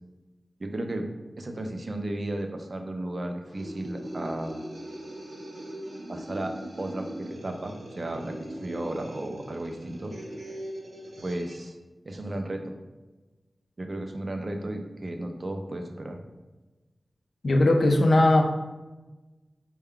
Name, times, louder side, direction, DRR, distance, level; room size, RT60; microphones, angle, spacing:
voice 1, 0.6-1.1 1.4-4.6 6.1-10.1 11.2-11.8 12.1-12.8 13.8-16.2, right 1 dB, 40° right, 4 dB, 0.4 m, -34 dB
sound 1, 3.5-11.7, right 1 dB, 75° right, 0.9 m, -40 dB
voice 2, 17.4-18.4, left 1 dB, 70° left, 3 dB, 0.5 m, -19 dB
4.3 x 2.2 x 3.6 m, 1.2 s
wide cardioid pair, 100°, 0 cm